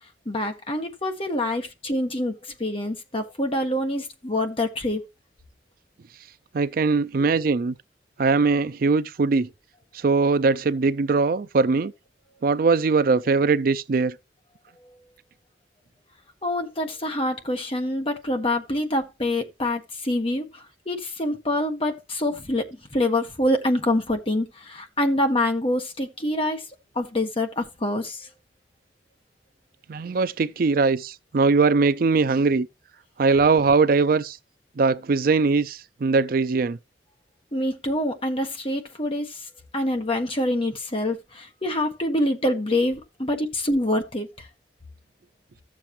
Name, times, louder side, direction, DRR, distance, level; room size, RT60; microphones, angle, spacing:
voice 1, 0.2-5.0 16.4-26.6 26.9-28.3 37.5-44.5, left 1 dB, 30° left, 1.6 m, -26 dB
voice 2, 6.5-7.7 8.2-9.5 9.9-11.9 12.4-14.1 29.9-32.7 33.2-34.4 34.8-36.8, right 4 dB, 55° right, 0.4 m, -21 dB
13.5 x 7.4 x 3.1 m
head